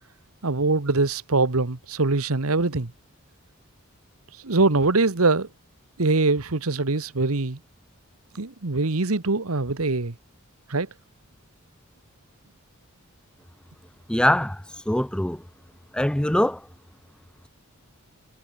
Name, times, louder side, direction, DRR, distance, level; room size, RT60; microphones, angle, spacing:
voice 1, 0.4-2.9 4.4-5.5 6.0-7.6 8.3-10.1 10.7-10.9, right 3 dB, 75° right, 1.4 m, -23 dB
voice 2, 14.1-14.6 14.9-15.4 15.9-16.6, left 1 dB, 5° left, 0.4 m, -22 dB
head